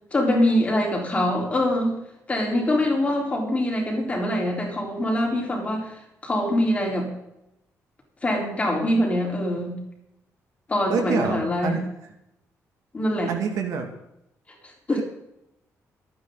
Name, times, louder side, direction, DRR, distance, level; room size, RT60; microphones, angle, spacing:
voice 1, 0.1-2.0 2.3-7.1 8.2-9.8 10.7-11.8 12.9-13.3 14.6-15.0, left 1 dB, 25° left, -1 dB, 4.2 m, -24 dB
voice 2, 10.9-11.8 13.3-13.9, right 5 dB, 80° right, 4 dB, 2.4 m, -26 dB
26.0 x 9.4 x 4.0 m, 0.83 s
cardioid pair, 125°, 6 cm